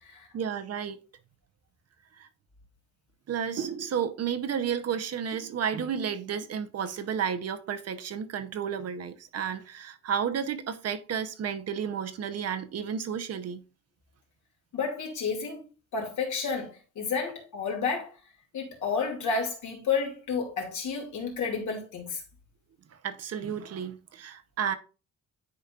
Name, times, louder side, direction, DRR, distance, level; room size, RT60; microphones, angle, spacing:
voice 1, 0.3-1.0 2.2-2.3 3.3-13.6 23.0-24.8, right 7 dB, 55° right, 0.8 m, -32 dB
voice 2, 14.7-15.6 15.9-18.1 18.5-22.2, left 5 dB, 75° left, 2.5 m, -31 dB
10.5 x 4.3 x 2.4 m
cardioid pair, 90°, 30 cm